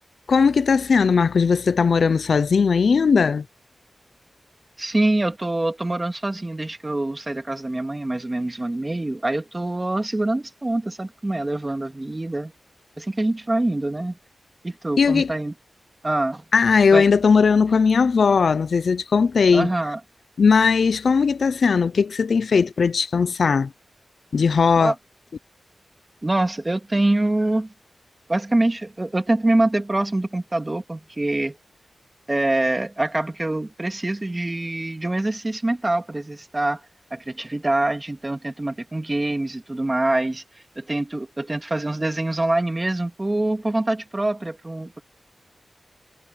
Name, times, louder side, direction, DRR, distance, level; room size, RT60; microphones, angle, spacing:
voice 1, 0.3-3.4 15.0-15.3 16.5-19.7 20.4-23.7 24.3-24.9, left 5 dB, 70° left, 0.6 m, -18 dB
voice 2, 4.8-12.5 13.0-14.2 14.6-15.5 16.0-16.4 16.9-17.1 19.5-20.0 24.8-25.0 26.2-27.7 28.3-31.6 32.3-36.8 37.1-40.4 40.8-45.0, right 2 dB, 20° right, 2.3 m, -24 dB
wide cardioid pair, 130°, 0 cm